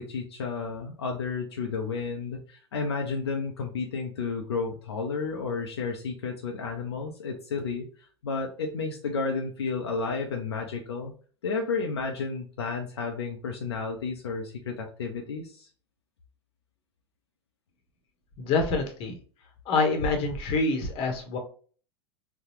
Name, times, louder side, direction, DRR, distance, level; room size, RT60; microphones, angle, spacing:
voice 1, 0.0-11.1 11.4-15.7, left 4 dB, 75° left, 1 dB, 0.6 m, -32 dB
voice 2, 18.4-19.2 19.7-21.4, left 3 dB, 40° left, 4 dB, 1.0 m, -26 dB
3.9 x 2.3 x 2.9 m, 0.41 s
figure-of-eight pair, 85°, 14 cm